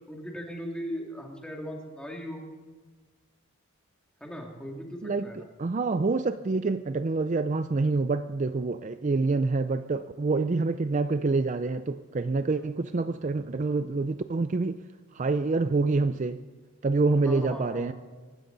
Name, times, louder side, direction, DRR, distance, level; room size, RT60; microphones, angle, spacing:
voice 1, 0.1-2.4 4.2-5.5 12.5-12.7 17.2-17.9, equal, 5° left, 2.4 m, -38 dB
voice 2, 5.0-14.8 15.1-16.4 16.8-17.9, right 3 dB, 35° right, 0.4 m, -27 dB
24.5 x 13.5 x 4.0 m
head